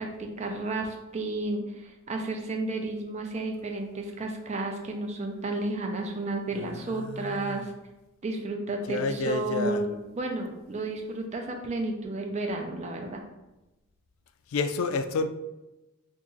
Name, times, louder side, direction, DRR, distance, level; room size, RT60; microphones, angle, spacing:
voice 1, 0.0-7.7 8.2-13.2, right 2 dB, 30° right, 3 dB, 0.5 m, -32 dB
voice 2, 6.9-7.7 8.9-9.8 14.5-15.3, left 4 dB, 65° left, 11 dB, 0.3 m, -29 dB
2.9 x 2.6 x 3.7 m, 0.99 s
head